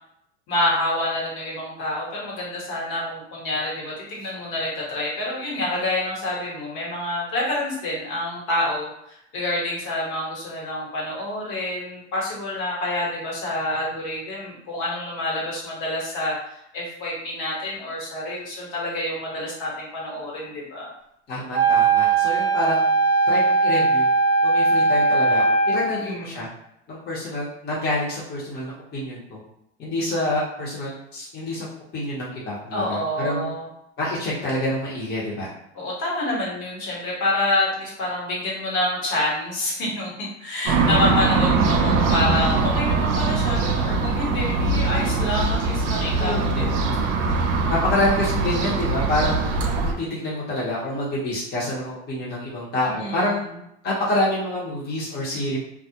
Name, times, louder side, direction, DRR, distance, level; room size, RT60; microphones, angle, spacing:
voice 1, 0.5-20.9 25.9-26.4 32.7-33.7 35.7-46.7 52.9-53.3, left 1 dB, 65° left, -4 dB, 1.2 m, -27 dB
voice 2, 21.3-22.9 23.3-24.1 24.4-26.5 26.9-29.4 29.8-31.7 31.9-33.5 34.0-35.5 46.2-46.9 47.7-49.5 49.8-53.5 53.8-55.6, left 1 dB, 30° left, -6 dB, 0.8 m, -27 dB
Wind instrument woodwind instrument, 21.5-26.0, right 3 dB, 20° right, 0.7 m, -19 dB
sound 1, 40.7-49.9, right 4 dB, 80° right, 0.6 m, -22 dB
2.3 x 2.0 x 2.7 m, 0.78 s
supercardioid pair, 115°, 35 cm